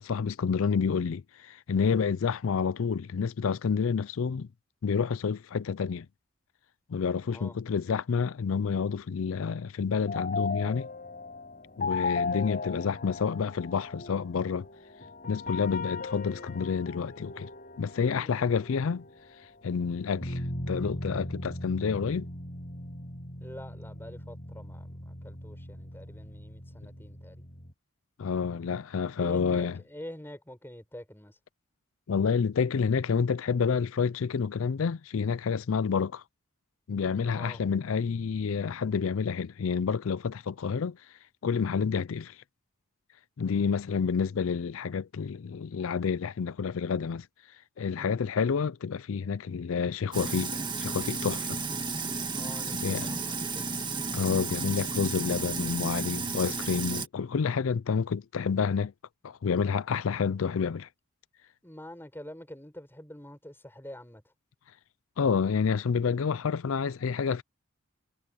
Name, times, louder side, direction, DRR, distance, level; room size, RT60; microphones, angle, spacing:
voice 1, 0.0-4.5 4.8-6.1 6.9-10.9 11.8-14.7 15.3-17.5 17.8-19.0 19.6-20.4 20.7-22.3 28.2-29.8 32.1-36.2 36.9-41.0 41.4-42.4 43.4-47.3 47.8-51.6 52.8-53.1 54.1-58.9 59.2-60.9 65.2-67.4, left 6 dB, 65° left, 0.4 m, -29 dB
voice 2, 7.2-7.6 17.9-18.7 23.4-27.5 29.2-31.4 37.3-37.6 47.9-48.2 52.3-53.7 61.6-64.3, left 1 dB, 10° left, 5.6 m, -46 dB
sound 1, 10.1-27.7, left 3 dB, 40° left, 5.7 m, -38 dB
Sink (filling or washing), 50.1-57.1, right 4 dB, 20° right, 1.8 m, -33 dB
head